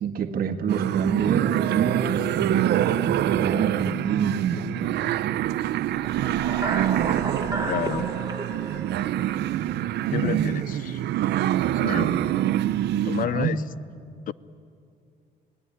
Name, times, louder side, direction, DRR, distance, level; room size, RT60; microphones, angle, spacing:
voice 1, 0.0-4.7 10.2-10.5 12.0-12.2 13.2-13.5, right 7 dB, 55° right, 8 dB, 1.6 m, -26 dB
sound 1, 0.7-13.3, right 12 dB, 70° right, 0.7 m, -25 dB
sound 2, 5.9-10.2, right 2 dB, 20° right, 1.7 m, -33 dB
voice 2, 7.7-8.1 10.1-11.0 11.7-12.1 13.0-13.6 14.3-14.4, left 11 dB, 50° left, 20 dB, 0.6 m, -30 dB
28.0 x 19.5 x 10.0 m, 2.4 s
cardioid pair, 160°, 18 cm